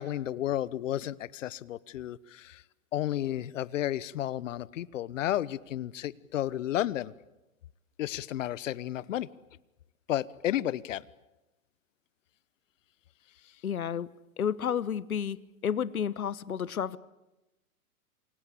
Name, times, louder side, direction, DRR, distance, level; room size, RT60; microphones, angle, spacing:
voice 1, 0.0-2.6 2.9-7.1 8.0-9.3 10.1-11.0, left 12 dB, 60° left, 1.2 m, -32 dB
voice 2, 13.6-14.1 14.4-15.4 15.6-17.0, left 8 dB, 80° left, 1.2 m, -31 dB
28.0 x 25.0 x 8.4 m
hypercardioid pair, 115°, 43 cm